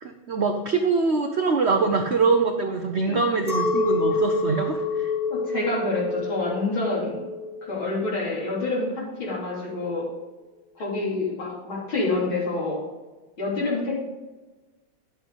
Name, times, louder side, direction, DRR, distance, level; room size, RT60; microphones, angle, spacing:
voice 1, 0.0-5.1, right 4 dB, 85° right, 5 dB, 0.6 m, -23 dB
Chink clink, 3.5-8.9, left 3 dB, 20° right, 1.4 m, -28 dB
voice 2, 5.3-7.2 7.6-10.1 10.8-12.8 13.4-14.0, left 3 dB, 75° left, -5 dB, 3.9 m, -27 dB
10.0 x 8.0 x 3.9 m, 1.2 s
omnidirectional pair, 2.2 m